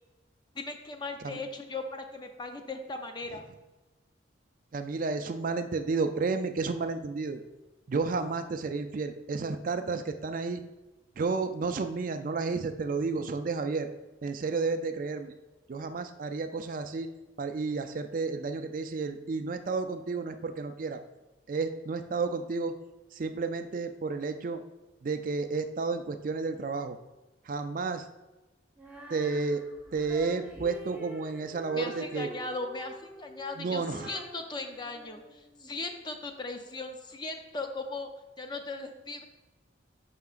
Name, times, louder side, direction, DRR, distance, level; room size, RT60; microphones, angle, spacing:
voice 1, 0.5-3.4 31.7-38.1 38.4-39.2, left 3 dB, 25° left, 5 dB, 0.5 m, -38 dB
voice 2, 4.7-7.4 7.9-10.6 11.2-13.9 14.2-15.3 15.7-17.1 17.4-21.0 21.5-22.7 23.1-24.6 25.0-27.0 27.4-28.1 29.1-29.6 29.9-32.3 33.6-34.2, right 4 dB, 45° right, 8 dB, 0.4 m, -31 dB
Female singing, 28.8-35.8, equal, 10° right, 0.8 m, -47 dB
9.4 x 5.7 x 2.4 m, 1.1 s
head